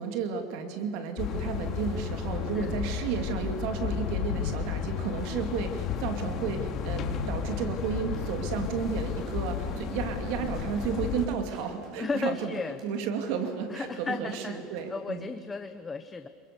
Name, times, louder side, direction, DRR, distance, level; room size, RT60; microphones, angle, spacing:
voice 1, 0.0-15.3, right 6 dB, 65° right, 6 dB, 2.4 m, -33 dB
sound 1, 1.2-11.3, left 7 dB, 40° left, 2.5 m, -33 dB
sound 2, 8.1-14.9 15.2-15.3, right 1 dB, 45° right, 8.0 m, -52 dB
voice 2, 12.0-12.8 13.7-14.6 14.9-16.3, left 4 dB, 15° left, 9 dB, 0.8 m, -34 dB
28.0 x 22.5 x 6.8 m, 2.5 s
supercardioid pair, 135°, 0 cm